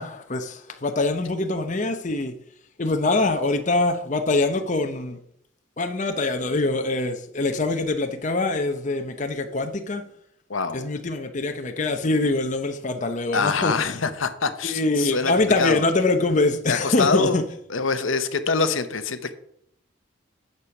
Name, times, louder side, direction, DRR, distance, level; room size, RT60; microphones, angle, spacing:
voice 1, 0.0-2.3 2.8-5.2 5.8-10.0 10.7-13.7 14.6-17.4, left 2 dB, 35° left, 0.8 m, -24 dB
voice 2, 13.3-15.8 16.7-17.4 17.7-19.3, left 4 dB, 75° left, 0.9 m, -24 dB
9.9 x 6.9 x 5.9 m
head